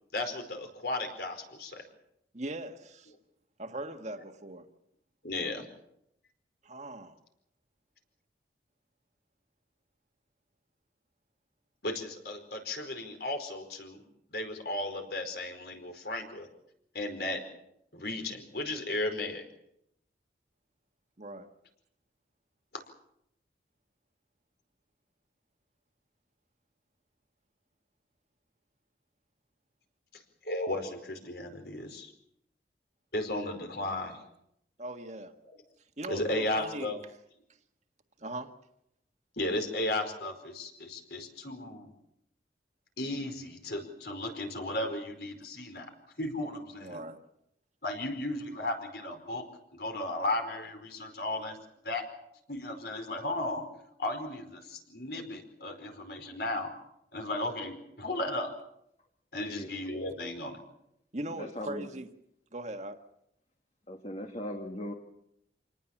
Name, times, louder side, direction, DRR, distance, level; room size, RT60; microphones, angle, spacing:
voice 1, 0.1-1.8 5.2-5.7 11.8-14.0 14.3-16.5 16.9-17.4 17.9-19.4 30.4-32.1 33.1-34.2 36.1-37.0 39.4-41.9 43.0-45.9 46.2-47.0 47.8-49.4 49.7-51.6 51.8-52.0 52.5-53.6 54.0-56.7 57.1-58.5 59.3-60.6, left 1 dB, 65° left, 4.8 m, -35 dB
voice 2, 2.3-3.1 3.6-4.7 6.6-7.2 21.2-21.5 34.8-35.3 36.0-36.9 38.2-38.5 46.8-47.2 61.1-62.1 62.5-63.0, right 1 dB, 40° right, 1.7 m, -39 dB
voice 3, 59.4-59.7 61.3-61.9 63.9-64.9, left 1 dB, 35° left, 1.9 m, -39 dB
27.0 x 19.0 x 7.3 m
head